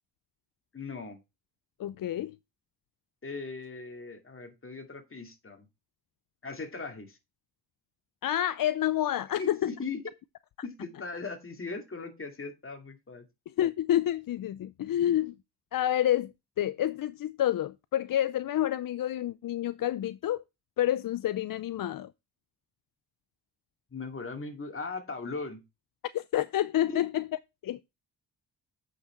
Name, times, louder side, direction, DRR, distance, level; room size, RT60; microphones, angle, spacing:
voice 1, 0.7-1.2 3.2-5.7 6.4-7.2 9.4-10.0 10.6-13.2 23.9-25.6 26.9-27.0, left 4 dB, 35° left, 2.3 m, -39 dB
voice 2, 1.8-2.3 8.2-9.7 13.6-15.3 15.7-20.4 20.8-22.1 26.1-27.3 27.6-27.8, left 12 dB, 60° left, 0.5 m, -28 dB
8.4 x 6.0 x 4.3 m
cardioid pair, 90°, 39 cm